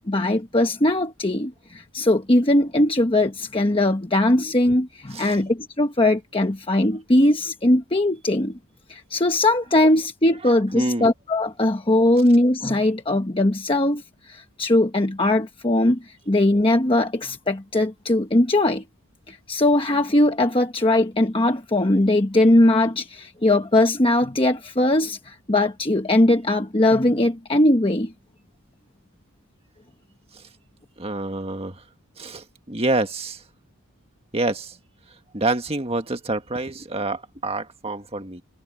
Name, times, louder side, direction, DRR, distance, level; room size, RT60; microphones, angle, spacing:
voice 1, 0.1-8.6 8.9-18.8 19.3-28.1, left 1 dB, 25° left, 1.1 m, -20 dB
voice 2, 10.7-11.1 30.3-30.4 31.0-31.8 32.2-33.4 34.3-34.8 35.3-38.4, right 2 dB, 25° right, 1.7 m, -27 dB
head